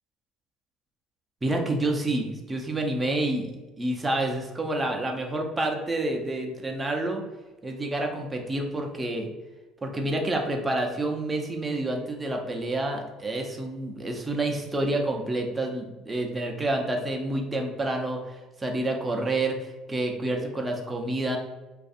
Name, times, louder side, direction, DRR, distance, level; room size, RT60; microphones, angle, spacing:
voice 1, 1.4-7.2 7.6-9.3 9.8-21.4, right 2 dB, 20° right, 2 dB, 0.5 m, -28 dB
2.5 x 2.4 x 2.4 m, 1.1 s
hypercardioid pair, 70°, 0 cm